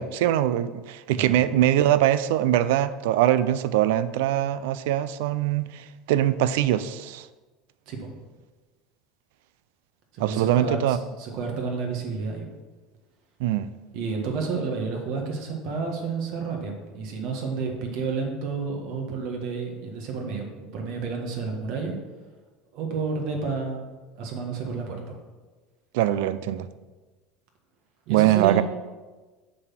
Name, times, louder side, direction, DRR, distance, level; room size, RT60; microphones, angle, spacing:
voice 1, 0.0-7.3 10.2-11.0 13.4-13.7 25.9-26.7 28.1-28.6, right 12 dB, 80° right, 15 dB, 0.4 m, -22 dB
voice 2, 10.1-12.5 13.9-22.0 22.7-23.9 24.2-25.2 28.1-28.6, right 4 dB, 65° right, 2 dB, 1.7 m, -30 dB
7.6 x 4.1 x 5.8 m, 1.3 s
supercardioid pair, 120°, 0 cm